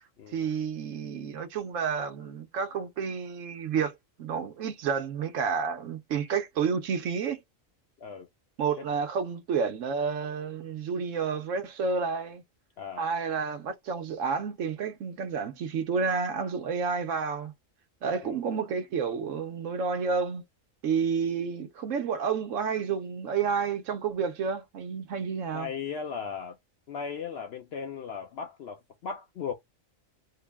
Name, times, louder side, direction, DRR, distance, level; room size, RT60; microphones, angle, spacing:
voice 1, 0.3-3.9 4.2-7.4 8.6-12.4 13.0-17.5 18.0-20.4 20.8-25.7, right 6 dB, 70° right, 1.0 m, -30 dB
voice 2, 25.5-26.6 26.9-29.5, left 6 dB, 60° left, 0.7 m, -37 dB
3.7 x 2.1 x 3.4 m
omnidirectional pair, 1.4 m